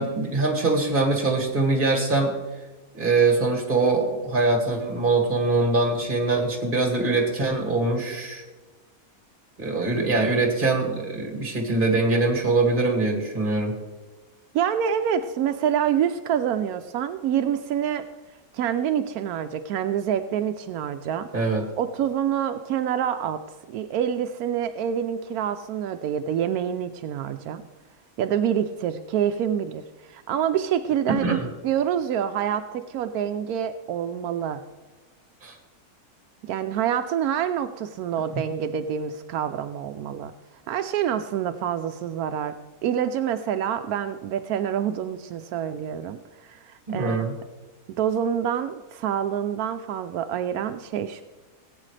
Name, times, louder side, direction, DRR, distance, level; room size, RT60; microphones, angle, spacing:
voice 1, 0.0-2.3 2.9-8.4 9.6-13.8 21.3-21.6 31.2-31.4 35.4-35.5 38.3-38.4 46.9-47.3, right 3 dB, 35° right, 0 dB, 2.4 m, -23 dB
voice 2, 14.5-18.0 18.5-21.3 21.8-23.4 23.7-27.6 28.2-34.6 36.5-40.3 40.7-42.6 42.8-47.2 48.0-51.2, right 9 dB, 85° right, 8 dB, 1.1 m, -27 dB
18.0 x 9.0 x 3.3 m, 1.2 s
omnidirectional pair, 1.5 m